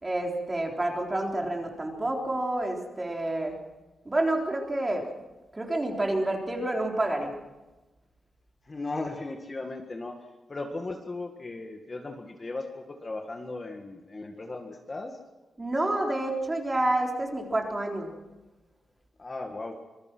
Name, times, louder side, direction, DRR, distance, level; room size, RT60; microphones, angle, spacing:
voice 1, 0.0-3.5 4.1-5.1 5.5-7.3 15.6-18.1, right 1 dB, 15° right, 1 dB, 3.8 m, -28 dB
voice 2, 8.7-10.2 10.5-15.2 19.2-19.8, left 2 dB, 25° left, 3 dB, 1.8 m, -37 dB
26.0 x 21.5 x 6.1 m, 1.1 s
wide cardioid pair, 170°, 0 cm